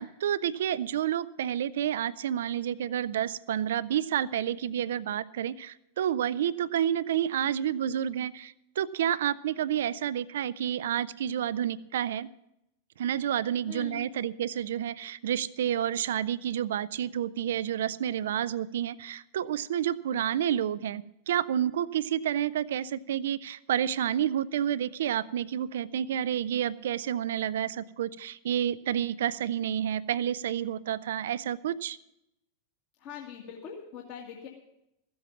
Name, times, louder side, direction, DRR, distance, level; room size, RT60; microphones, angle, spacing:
voice 1, 0.0-12.3 13.0-32.0, right 10 dB, 60° right, 19 dB, 0.5 m, -29 dB
voice 2, 33.0-34.5, left 7 dB, 45° left, -2 dB, 1.9 m, -42 dB
15.0 x 7.9 x 7.1 m, 0.84 s
figure-of-eight pair, 90°, 0 cm